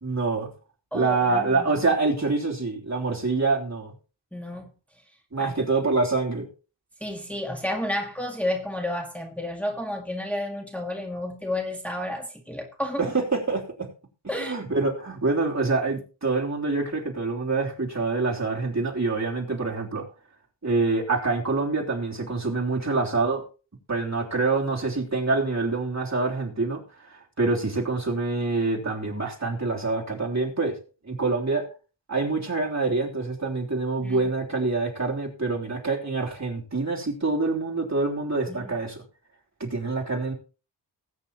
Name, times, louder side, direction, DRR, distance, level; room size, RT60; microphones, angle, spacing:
voice 1, 0.0-0.5 0.9-3.9 5.3-6.5 13.0-13.9 14.4-20.0 20.6-23.4 23.9-30.8 31.0-31.6 32.1-39.0 39.6-40.3, right 3 dB, 35° right, 3.4 m, -26 dB
voice 2, 0.9-1.8 4.3-4.7 5.4-5.5 7.0-13.1 14.3-14.5 34.0-34.2 38.5-38.7, left 1 dB, 5° left, 1.9 m, -31 dB
20.0 x 9.3 x 3.0 m
wide cardioid pair, 75°, 45 cm